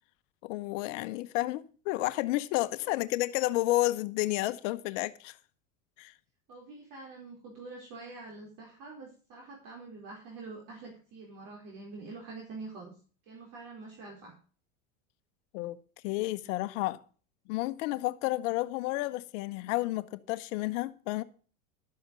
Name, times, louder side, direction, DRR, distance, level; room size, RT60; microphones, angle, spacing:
voice 1, 0.4-5.4 6.0-6.1 15.5-15.8 16.0-17.0 17.5-21.2, left 18 dB, 65° left, 1.0 m, -31 dB
voice 2, 6.5-12.9 13.3-14.3, right 3 dB, 50° right, 4.6 m, -46 dB
12.5 x 7.9 x 5.2 m
hypercardioid pair, 95°, 40 cm